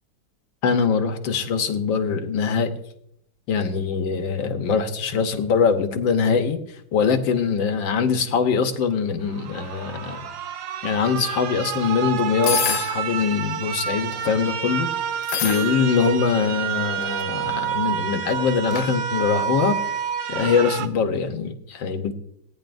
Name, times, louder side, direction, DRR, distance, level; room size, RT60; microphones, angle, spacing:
voice 1, 0.6-2.7 3.5-6.6 6.9-10.3 10.8-14.9 15.4-19.8 20.3-22.1, left 6 dB, 70° left, 6 dB, 1.7 m, -23 dB
sound 1, 9.3-20.9, right 8 dB, 75° right, 1.4 m, -29 dB
sound 2, 12.4-13.0 13.9-14.3 15.2-15.7 16.9-17.2 18.7-18.9, left 8 dB, 90° left, 0.7 m, -26 dB
18.0 x 9.7 x 2.6 m, 0.73 s
omnidirectional pair, 2.2 m